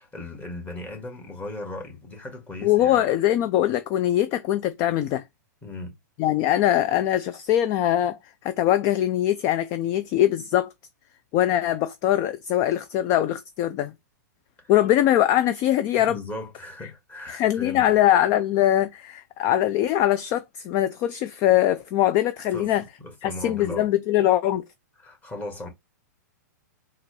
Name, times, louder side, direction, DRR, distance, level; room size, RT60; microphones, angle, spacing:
voice 1, 0.0-3.0 5.6-6.0 14.6-14.7 16.0-18.0 22.5-23.9 25.0-25.7, left 2 dB, 15° left, 1.7 m, -37 dB
voice 2, 2.6-5.2 6.2-10.7 11.3-13.9 14.7-16.2 17.3-22.8 23.2-24.6, left 12 dB, 35° left, 0.4 m, -22 dB
4.0 x 2.4 x 3.1 m
hypercardioid pair, 120°, 10 cm